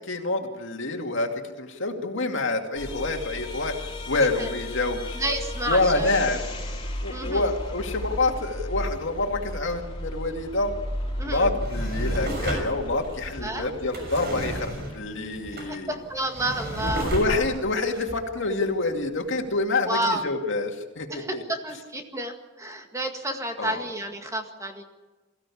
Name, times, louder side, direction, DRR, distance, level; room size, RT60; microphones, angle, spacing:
voice 1, 0.1-3.8 4.1-5.2 5.7-6.4 7.0-10.7 11.2-16.0 16.8-21.4 23.6-23.8, left 2 dB, 65° left, 3 dB, 2.5 m, -27 dB
sound 1, 2.8-14.9, left 1 dB, 25° left, 3.2 m, -34 dB
voice 2, 5.1-6.2 7.1-7.5 11.2-11.5 13.4-13.7 15.7-17.1 19.9-20.2 21.1-24.8, right 1 dB, 15° right, 4 dB, 1.9 m, -30 dB
Drawer open or close, 11.4-19.1 19.5-19.6, right 1 dB, 55° right, 6.2 m, -34 dB
23.0 x 16.0 x 8.6 m, 1.2 s
head